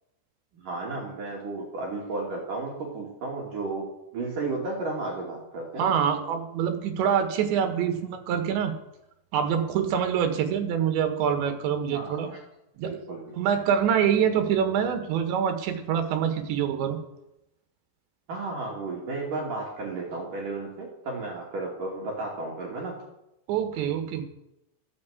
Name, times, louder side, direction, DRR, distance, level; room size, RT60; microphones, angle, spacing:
voice 1, 0.5-3.9 4.1-5.9 11.9-12.4 12.8-13.2 18.3-22.9, right 3 dB, 50° right, -3 dB, 3.7 m, -33 dB
voice 2, 5.8-8.7 9.3-12.3 12.8-12.9 13.3-17.0 23.5-24.2, right 8 dB, 70° right, 7 dB, 3.5 m, -25 dB
14.5 x 9.7 x 8.3 m, 0.88 s
omnidirectional pair, 5.5 m